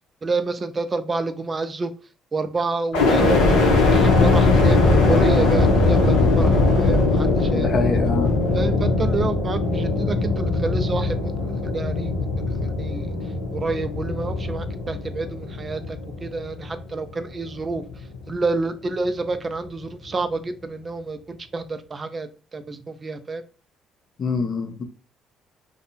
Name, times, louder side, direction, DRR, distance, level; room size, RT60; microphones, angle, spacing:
voice 1, 0.2-1.9 2.3-7.8 8.5-12.3 12.6-13.1 13.5-17.8 18.3-23.4, right 3 dB, 35° right, 10 dB, 0.3 m, -28 dB
sound 1, 2.9-16.9 17.4-18.2, left 3 dB, 85° left, 0.6 m, -20 dB
voice 2, 7.5-8.3 24.2-24.8, left 4 dB, 50° left, 6 dB, 0.6 m, -25 dB
2.6 x 2.1 x 2.8 m, 0.37 s
hypercardioid pair, 60°, 0 cm